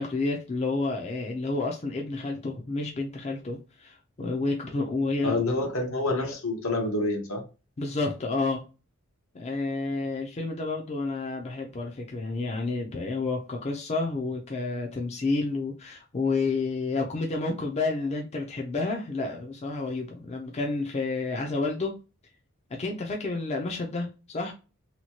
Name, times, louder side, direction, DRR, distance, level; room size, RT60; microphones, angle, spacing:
voice 1, 0.0-5.4 7.8-8.6 9.3-21.9 22.7-24.5, left 3 dB, 30° left, 0.4 m, -30 dB
voice 2, 5.2-7.4, left 2 dB, 70° left, 0.8 m, -27 dB
2.9 x 2.2 x 2.8 m
head